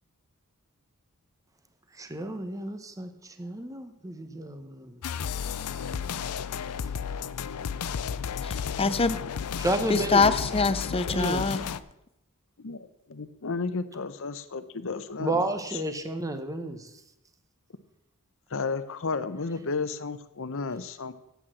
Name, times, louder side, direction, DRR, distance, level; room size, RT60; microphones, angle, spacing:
voice 1, 1.9-5.0 9.6-10.4 11.1-11.5 15.2-16.9, right 1 dB, 15° right, 0.8 m, -31 dB
sound 1, 5.0-11.8, left 7 dB, 90° left, 0.5 m, -33 dB
voice 2, 8.4-9.2 9.9-11.6, left 4 dB, 25° left, 0.7 m, -24 dB
voice 3, 12.6-15.4 18.5-21.1, left 4 dB, 65° left, 0.8 m, -33 dB
8.7 x 8.1 x 7.5 m
head